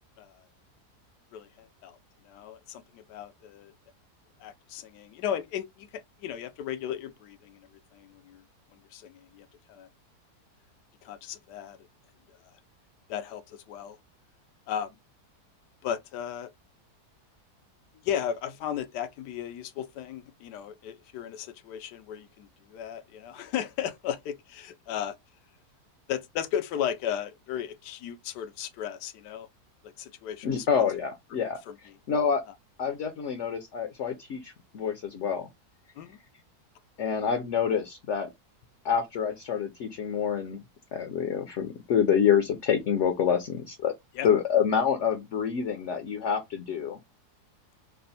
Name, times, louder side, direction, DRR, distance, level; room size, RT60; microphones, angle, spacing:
voice 1, 1.3-2.0 2.2-3.7 4.4-8.4 8.9-9.9 11.0-11.8 13.1-14.0 14.7-14.9 15.8-16.5 18.0-25.1 26.1-29.5 30.0-30.8 31.7-31.8 36.0-36.2 44.1-44.3, left 9 dB, 90° left, 1.2 m, -35 dB
voice 2, 30.4-31.6 32.1-32.4 32.8-35.5 37.0-38.3 38.8-40.6 40.9-43.9 44.2-47.0, left 7 dB, 60° left, 0.8 m, -27 dB
3.4 x 2.1 x 3.9 m
omnidirectional pair, 1.7 m